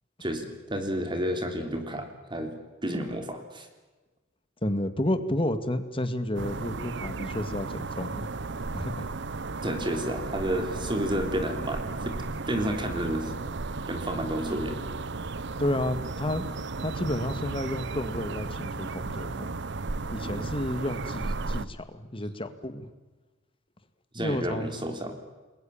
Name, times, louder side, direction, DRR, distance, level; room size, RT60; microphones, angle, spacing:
voice 1, 0.2-2.5 2.8-3.7 9.6-12.2 12.5-13.3 13.9-14.8 20.2-20.5 24.1-25.1, equal, 25° right, 5 dB, 3.4 m, -31 dB
voice 2, 4.6-8.3 8.7-9.1 15.6-16.5 16.8-19.5 20.1-22.9 24.2-24.9, left 1 dB, 30° left, 10 dB, 2.0 m, -31 dB
sound 1, 6.3-21.6, right 3 dB, 65° right, 0.9 m, -34 dB
29.5 x 21.5 x 7.2 m, 1.2 s
head